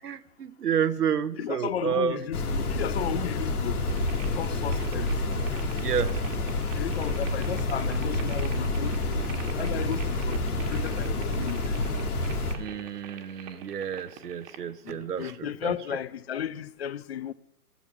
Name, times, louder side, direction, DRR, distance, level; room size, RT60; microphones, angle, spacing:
voice 1, 0.0-2.2 5.8-6.1 12.6-15.3 15.6-15.8, right 8 dB, 85° right, 0.9 m, -29 dB
voice 2, 1.4-3.9 4.4-5.2 6.7-9.2 9.6-11.8 14.8-17.3, left 10 dB, 45° left, 0.5 m, -34 dB
sound 1, 2.3-12.5, left 2 dB, 70° left, 2.2 m, -28 dB
sound 2, 3.9-14.6, right 8 dB, 25° right, 1.4 m, -47 dB
14.0 x 7.2 x 6.0 m
hypercardioid pair, 130°, 46 cm